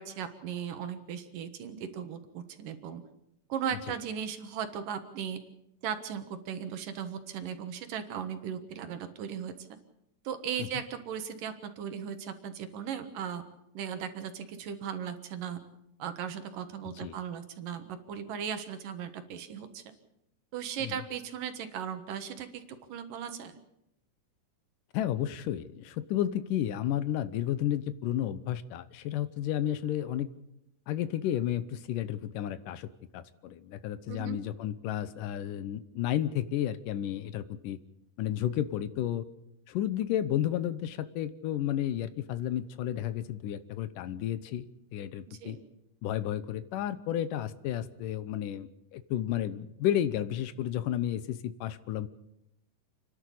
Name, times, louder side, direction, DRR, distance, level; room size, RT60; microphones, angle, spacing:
voice 1, 0.0-3.0 3.5-5.4 5.8-9.7 10.2-13.4 13.7-15.6 16.0-19.8 20.5-22.6 22.9-23.6 34.1-34.4 45.3-45.6, right 8 dB, 80° right, 8 dB, 3.1 m, -37 dB
voice 2, 16.8-17.2 20.8-21.0 24.9-30.3 30.9-37.8 38.2-39.2 39.7-44.6 44.9-45.6 46.0-52.1, left 11 dB, 80° left, 14 dB, 2.5 m, -32 dB
29.5 x 11.0 x 8.5 m, 0.84 s
omnidirectional pair, 3.8 m